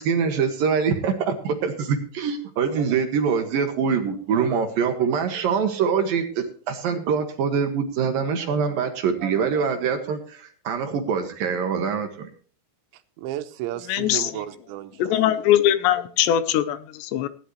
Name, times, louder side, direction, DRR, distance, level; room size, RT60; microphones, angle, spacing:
voice 1, 0.0-12.3, right 6 dB, 65° right, 6 dB, 2.4 m, -24 dB
voice 2, 12.9-15.5, right 13 dB, 85° right, 9 dB, 3.2 m, -34 dB
voice 3, 13.9-14.3 15.0-17.3, left 11 dB, 80° left, 13 dB, 2.9 m, -21 dB
17.0 x 11.0 x 3.1 m, 0.43 s
omnidirectional pair, 5.2 m